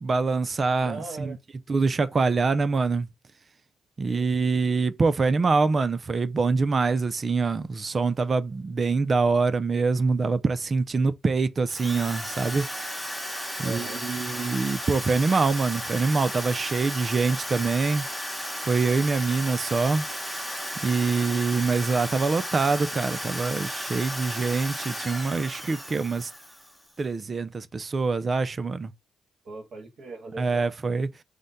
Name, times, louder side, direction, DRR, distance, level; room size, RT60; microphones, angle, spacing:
voice 1, 0.0-1.4 1.7-3.1 4.0-12.7 13.6-18.1 18.6-20.1 20.8-26.3 27.0-28.9 30.4-31.1, right 4 dB, 35° right, 0.4 m, -25 dB
voice 2, 0.8-1.4 4.1-4.3 13.6-14.0 29.5-30.7, right 3 dB, 55° right, 1.7 m, -39 dB
Drill, 11.7-26.9, equal, 5° right, 0.9 m, -34 dB
4.9 x 2.2 x 4.0 m
cardioid pair, 90°, 0 cm